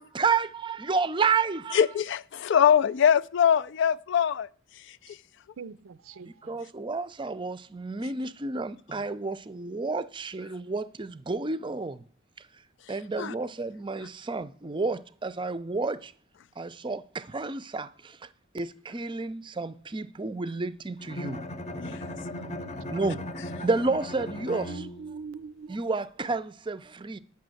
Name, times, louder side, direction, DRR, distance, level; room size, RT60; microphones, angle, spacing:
voice 1, 0.0-1.8 6.2-12.0 12.9-16.1 16.6-18.2 18.5-21.4 22.9-23.2 23.6-24.9 25.7-27.2, right 4 dB, 25° right, 0.5 m, -30 dB
voice 2, 1.7-4.5 13.2-13.3 21.8-22.0, left 8 dB, 60° left, 0.4 m, -22 dB
voice 3, 5.6-6.6 24.7-25.8, right 5 dB, 75° right, 0.5 m, -42 dB
Bowed string instrument, 21.0-25.3, left 1 dB, 30° left, 0.8 m, -37 dB
9.7 x 5.9 x 7.7 m
head